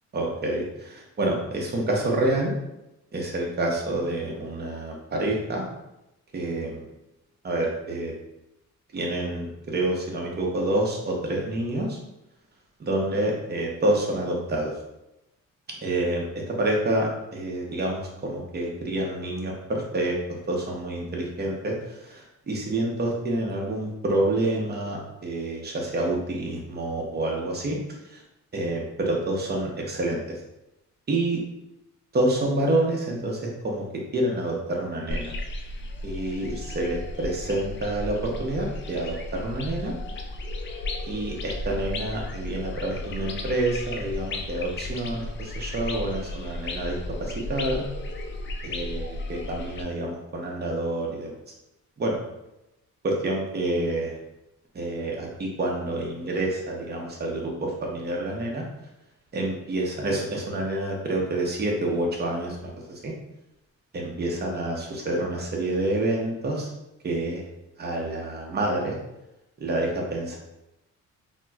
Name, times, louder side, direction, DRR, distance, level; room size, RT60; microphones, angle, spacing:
voice 1, 0.1-2.5 3.1-5.6 6.3-6.9 7.4-8.1 8.9-12.0 12.8-14.7 15.8-16.2 16.6-27.8 28.1-28.2 28.5-30.3 31.1-31.4 32.1-33.8 34.1-35.3 36.0-39.9 41.1-47.8 48.6-51.3 52.0-52.2 53.0-54.1 54.7-58.6 59.3-63.1 63.9-66.7 67.0-67.4 67.8-69.0 69.6-70.4, right 1 dB, 35° right, -1 dB, 0.8 m, -28 dB
sound 1, 35.1-49.8, left 2 dB, 40° left, 0.4 m, -34 dB
4.1 x 2.1 x 2.3 m, 0.91 s
cardioid pair, 90°, 30 cm